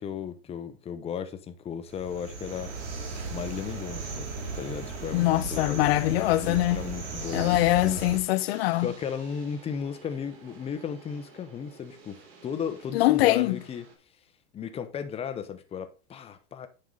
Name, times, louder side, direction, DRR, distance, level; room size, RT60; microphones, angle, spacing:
voice 1, 0.0-2.7 3.3-4.3 4.6-6.1 6.4-8.0 8.8-13.9 14.5-16.7, left 7 dB, 15° left, 0.8 m, -35 dB
sound 1, 1.9-8.2, right 4 dB, 90° right, 4.4 m, -36 dB
sound 2, 2.5-14.0, right 4 dB, 35° right, 2.8 m, -50 dB
voice 2, 5.1-6.8 7.3-8.9 12.9-13.6, left 17 dB, 60° left, 0.7 m, -23 dB
9.5 x 5.6 x 3.9 m
supercardioid pair, 150°, 34 cm